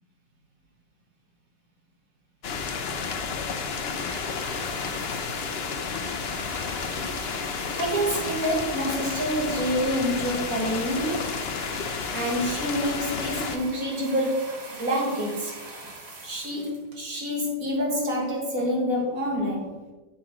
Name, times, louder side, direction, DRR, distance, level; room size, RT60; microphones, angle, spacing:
sound 1, 2.4-13.6, left 5 dB, 55° left, 0.7 m, -31 dB
sound 2, 3.7-17.3 18.1-18.2, right 2 dB, 75° right, 2.3 m, -43 dB
voice 1, 7.8-11.3 12.1-15.6 16.2-19.8, equal, 55° right, -2 dB, 2.4 m, -27 dB
9.9 x 7.3 x 3.0 m, 1.2 s
omnidirectional pair, 1.8 m